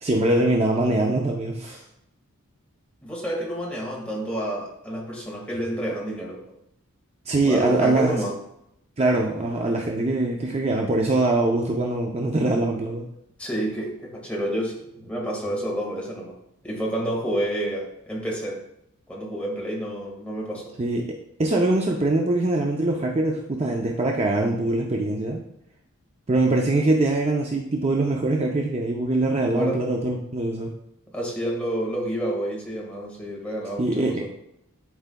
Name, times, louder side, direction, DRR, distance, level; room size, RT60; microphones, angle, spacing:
voice 1, 0.0-1.8 7.3-8.2 9.0-13.0 20.8-21.0 21.4-25.4 26.3-30.7 33.8-34.3, right 2 dB, 30° right, 0 dB, 0.6 m, -23 dB
voice 2, 3.0-6.5 7.4-8.4 13.4-16.4 16.6-18.6 19.1-20.7 29.5-29.8 31.1-34.3, right 1 dB, 5° left, -3 dB, 1.7 m, -29 dB
11.5 x 4.6 x 2.3 m, 0.77 s
head